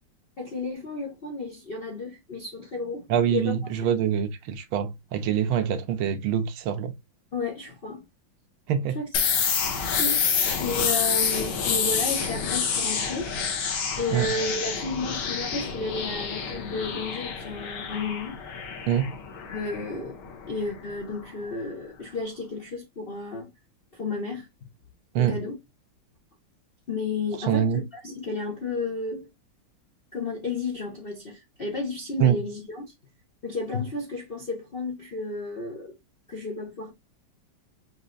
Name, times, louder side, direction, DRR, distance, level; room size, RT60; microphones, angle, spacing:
voice 1, 0.4-3.0 3.3-3.5 7.3-8.0 8.9-9.0 9.7-10.3 10.6-13.3 14.0-18.4 19.5-20.2 20.5-23.5 23.9-24.7 25.2-25.6 26.9-29.3 30.1-32.9 33.4-35.9 36.3-36.9, left 3 dB, 55° left, 0.6 m, -32 dB
voice 2, 3.1-6.9 8.7-9.0 14.1-14.3 18.9-19.1 25.1-25.4 27.5-27.8 32.2-32.4, right 9 dB, 85° right, 1.6 m, -24 dB
sound 1, 9.1-20.8, left 6 dB, 90° left, 1.9 m, -28 dB
5.3 x 3.1 x 2.5 m
omnidirectional pair, 2.3 m